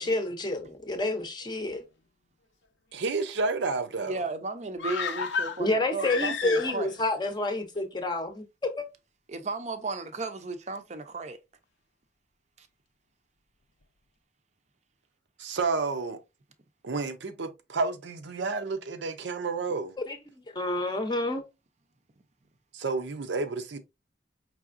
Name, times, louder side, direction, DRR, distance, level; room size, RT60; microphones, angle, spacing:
voice 1, 0.0-1.9 5.6-8.9 20.1-20.2 20.5-21.5, left 2 dB, 25° left, 0.6 m, -29 dB
voice 2, 2.9-4.2 15.4-16.2 16.8-20.0 22.7-23.8, right 3 dB, 85° right, 0.6 m, -30 dB
voice 3, 4.0-6.9 9.3-11.4 12.6-12.7, right 3 dB, 40° right, 0.5 m, -35 dB
sound 1, 4.8-7.0 7.3-7.4, left 5 dB, 90° left, 0.6 m, -32 dB
4.8 x 3.3 x 2.5 m
head